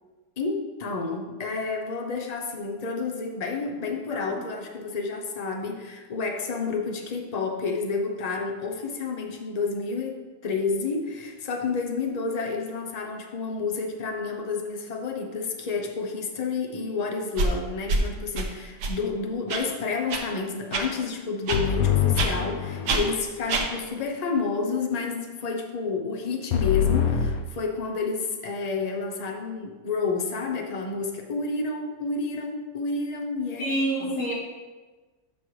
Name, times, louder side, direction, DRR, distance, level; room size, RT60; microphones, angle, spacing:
voice 1, 0.4-33.8, left 4 dB, 50° left, 3 dB, 0.5 m, -30 dB
voice 2, 3.8-4.2 33.6-34.3, right 1 dB, 90° left, -8 dB, 3.4 m, -28 dB
sound 1, 17.4-17.5 17.9-18.0 18.4-18.5 18.8-18.9 19.5-19.6 20.1-20.2 20.7-20.8 21.5-21.6 22.2-22.3 22.9-23.0 23.5-23.6, right 3 dB, 75° right, 1.5 m, -25 dB
sound 2, 21.5-23.2 26.5-27.4, left 8 dB, 65° left, 1.0 m, -24 dB
8.2 x 6.3 x 3.2 m, 1.3 s
omnidirectional pair, 1.8 m